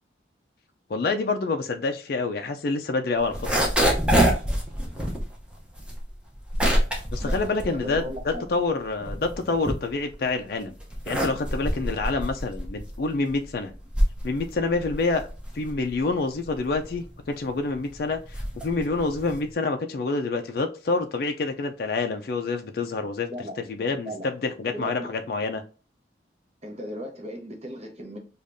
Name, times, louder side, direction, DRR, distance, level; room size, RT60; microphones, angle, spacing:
voice 1, 0.9-3.7 7.1-10.7 11.1-13.7 14.2-15.3 15.5-23.3 23.7-25.6, left 3 dB, 55° left, 0.4 m, -27 dB
sound 1, 3.2-8.5 8.9-10.3 10.8-19.5, equal, 5° right, 0.7 m, -26 dB
voice 2, 7.2-8.4 23.3-23.7 24.0-24.3 24.7-25.1 26.6-28.2, equal, 35° right, 0.9 m, -37 dB
5.0 x 2.3 x 2.6 m
head